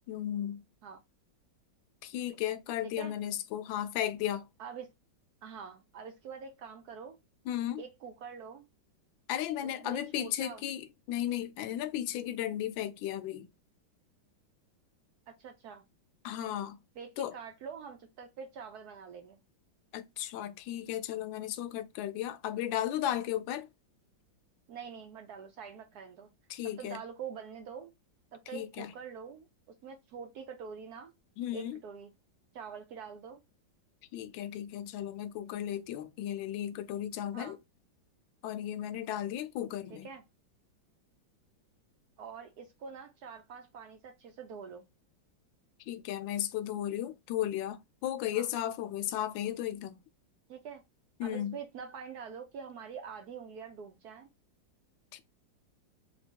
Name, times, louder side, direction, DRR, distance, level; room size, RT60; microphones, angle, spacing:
voice 1, 0.1-0.6 2.0-4.5 7.5-7.8 9.3-13.5 16.2-16.8 17.2-17.3 19.9-23.7 26.5-27.0 28.5-28.9 31.4-31.8 34.1-37.6 38.4-40.1 45.9-50.0 51.2-51.5 55.1-55.2, left 11 dB, 80° left, 1.3 m, -35 dB
voice 2, 2.8-3.1 4.6-4.9 5.4-7.2 7.8-8.7 9.6-10.6 15.3-15.9 17.0-19.4 24.7-26.3 26.6-27.9 28.3-29.5 29.8-31.1 31.5-32.1 32.5-33.4 37.3-37.6 39.9-40.2 42.2-44.9 48.3-48.5 50.5-50.8 51.2-54.3, right 6 dB, 70° right, 1.0 m, -45 dB
3.3 x 2.9 x 4.4 m
omnidirectional pair, 2.1 m